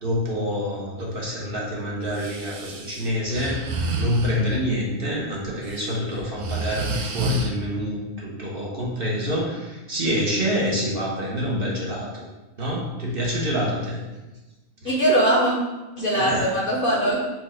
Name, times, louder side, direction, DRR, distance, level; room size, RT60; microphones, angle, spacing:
voice 1, 0.0-12.2 12.6-14.0 14.8-14.9 16.1-16.5 17.0-17.1, equal, 50° right, -4 dB, 0.9 m, -27 dB
Breathing, 2.1-4.6 5.4-5.8 6.2-7.5, right 1 dB, 75° right, 1.0 m, -29 dB
voice 2, 14.8-15.5 16.0-17.2, right 1 dB, 50° left, -3 dB, 0.8 m, -21 dB
4.7 x 2.5 x 4.3 m, 1.1 s
omnidirectional pair, 1.4 m